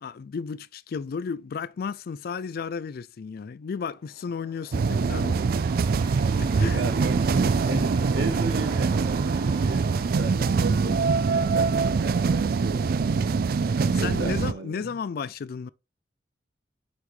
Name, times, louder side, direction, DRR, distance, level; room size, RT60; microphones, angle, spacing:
voice 1, 0.0-5.4 6.4-6.8 13.8-15.7, left 5 dB, 55° left, 0.4 m, -33 dB
sound 1, 3.9-11.0, right 3 dB, 30° right, 0.7 m, -45 dB
sound 2, 4.7-14.5, right 4 dB, 55° right, 0.4 m, -24 dB
voice 2, 6.6-13.0 14.0-14.9, right 2 dB, 85° right, 1.2 m, -34 dB
6.1 x 5.8 x 3.2 m
head